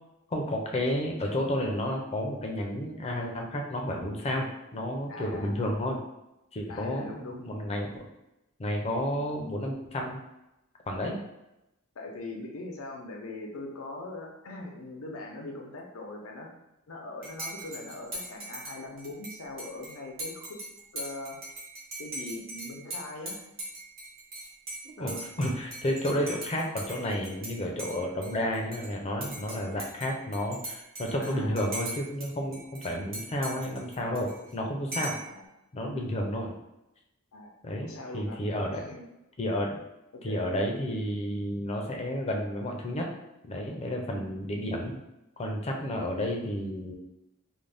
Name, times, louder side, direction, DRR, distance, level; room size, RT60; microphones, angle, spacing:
voice 1, 0.3-6.0 6.5-8.0 8.6-10.2 10.9-11.2 25.0-35.2 35.7-36.5 37.6-37.9 38.1-38.8 39.4-39.8 40.2-43.1 43.4-45.0 45.4-46.9, left 1 dB, 30° left, 1 dB, 0.4 m, -31 dB
voice 2, 5.1-5.9 6.7-7.4 11.9-16.5 16.9-20.6 20.9-21.4 22.0-23.4 25.0-25.2 31.2-31.7 35.1-35.5 37.3-38.4 38.7-39.0 40.1-40.4 44.1-44.4, left 2 dB, 85° left, 1 dB, 0.6 m, -41 dB
Dishes pots and pans / Cutlery silverware / Chink clink, 17.2-27.5 27.8-28.9 29.2-32.3 32.5-34.5 34.9-35.3, right 2 dB, 45° right, 0.9 m, -40 dB
2.5 x 2.1 x 3.3 m, 0.91 s
head